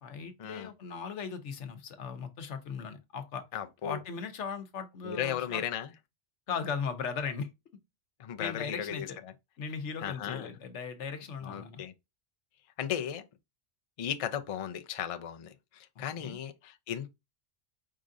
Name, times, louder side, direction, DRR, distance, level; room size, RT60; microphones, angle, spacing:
voice 1, 0.0-3.4 3.8-5.6 6.5-7.5 8.4-9.2 9.6-11.8 16.0-16.4, left 6 dB, 85° left, 1.1 m, -38 dB
voice 2, 3.5-4.0 5.0-5.9 8.2-9.1 10.0-10.5 11.4-11.9 12.8-13.2 14.0-17.1, left 9 dB, 45° left, 0.4 m, -36 dB
5.0 x 3.7 x 2.6 m
omnidirectional pair, 1.2 m